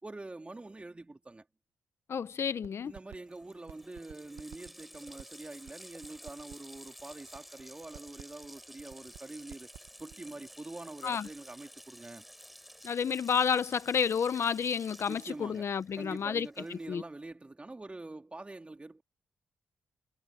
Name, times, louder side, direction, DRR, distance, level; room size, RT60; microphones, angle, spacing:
voice 1, 0.0-1.4 2.8-9.7 10.0-12.2 15.1-19.0, right 2 dB, 20° right, 3.4 m, -45 dB
voice 2, 2.1-2.9 11.0-11.3 12.8-17.0, left 7 dB, 60° left, 0.8 m, -30 dB
sound 1, 2.6-3.2 3.4-10.1, right 11 dB, 85° right, 1.1 m, -50 dB
Water tap faucet, 3.0-3.1 3.3-17.0, equal, ahead, 7.0 m, -53 dB
cardioid pair, 65°, 5 cm